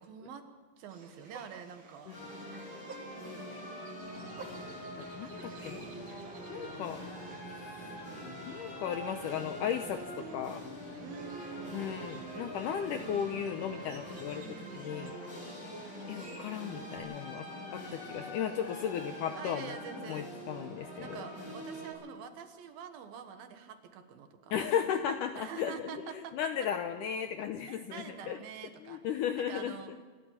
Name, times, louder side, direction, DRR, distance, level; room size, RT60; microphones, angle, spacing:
voice 1, 0.0-0.4 0.8-2.2 11.0-12.6 14.3-15.2 19.4-20.3 21.0-24.5 25.3-26.3 27.7-29.0 29.4-29.9, right 7 dB, 70° right, 7 dB, 3.0 m, -46 dB
sound 1, 0.9-17.0, right 4 dB, 45° right, 1.9 m, -56 dB
sound 2, 2.1-21.9, equal, 55° left, 9.5 m, -44 dB
sound 3, 4.0-14.7, right 5 dB, 90° right, 3.8 m, -55 dB
voice 2, 5.0-5.9 6.5-7.0 7.5-7.9 8.5-10.6 11.7-14.4 14.7-15.2 16.1-19.8 20.1-21.3 24.5-28.4 28.8-29.8, left 8 dB, 80° left, 7 dB, 1.9 m, -35 dB
28.5 x 12.5 x 7.4 m, 1.5 s
omnidirectional pair, 4.6 m